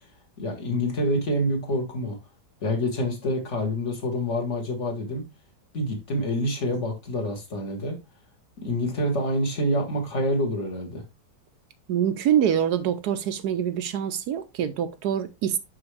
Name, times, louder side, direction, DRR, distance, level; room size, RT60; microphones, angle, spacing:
voice 1, 0.4-2.2 2.6-5.2 5.7-8.0 8.6-11.0, equal, 40° left, 1.8 m, -27 dB
voice 2, 11.9-15.6, right 9 dB, 70° right, 1.0 m, -25 dB
6.1 x 5.6 x 3.2 m
omnidirectional pair, 2.0 m